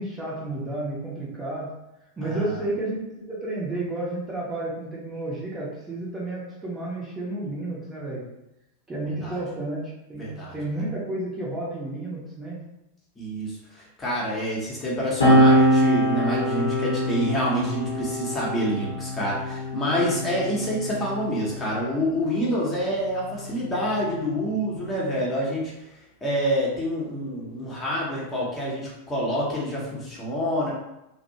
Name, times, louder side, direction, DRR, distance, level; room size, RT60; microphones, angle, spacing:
voice 1, 0.0-1.7 2.2-8.2 8.9-12.6, right 2 dB, 15° right, -6 dB, 0.7 m, -31 dB
voice 2, 10.1-10.6 13.2-25.7 26.2-30.7, equal, 20° left, -5 dB, 0.8 m, -27 dB
sound 1, 15.2-22.1 23.1-24.9, equal, 70° left, 0.7 m, -24 dB
2.5 x 2.0 x 2.7 m, 0.90 s
figure-of-eight pair, 90°, 0 cm